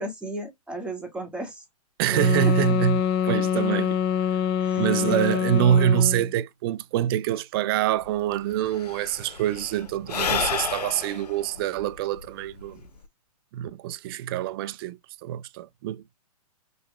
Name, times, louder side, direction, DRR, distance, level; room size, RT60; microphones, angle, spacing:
voice 1, 0.0-1.6 2.3-2.5 4.6-5.2, right 1 dB, 5° right, 1.7 m, -35 dB
voice 2, 2.0-4.0 4.8-12.8 13.5-16.0, right 11 dB, 40° right, 0.4 m, -25 dB
sound 1, 2.1-6.3, left 8 dB, 30° left, 0.8 m, -25 dB
Sigh / Breathing, 8.0-8.1 8.3-13.0, left 6 dB, 85° left, 0.6 m, -31 dB
5.3 x 2.9 x 2.2 m
hypercardioid pair, 125°, 20 cm